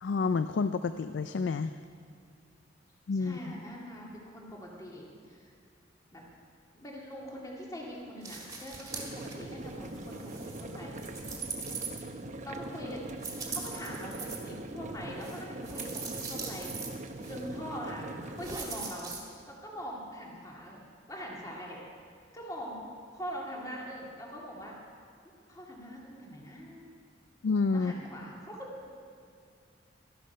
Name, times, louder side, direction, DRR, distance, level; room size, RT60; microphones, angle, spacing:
voice 1, 0.0-1.7 3.1-3.4 27.4-27.9, left 4 dB, 70° left, 11 dB, 0.4 m, -29 dB
voice 2, 3.1-5.5 6.1-6.2 6.7-11.3 12.4-13.0 13.5-16.7 17.3-18.1 18.4-19.2 19.5-20.8 21.1-21.8 22.3-22.9 23.1-24.8 25.5-26.9 27.7-28.9, equal, 20° left, -3 dB, 2.1 m, -42 dB
sound 1, 8.2-9.3 9.7-12.4 13.2-14.4 15.2-16.9 17.2-17.4 18.4-19.2, right 4 dB, 20° right, 2.1 m, -41 dB
sound 2, 8.9-18.6, right 1 dB, 40° right, 0.8 m, -42 dB
13.5 x 11.5 x 5.5 m, 2.4 s
head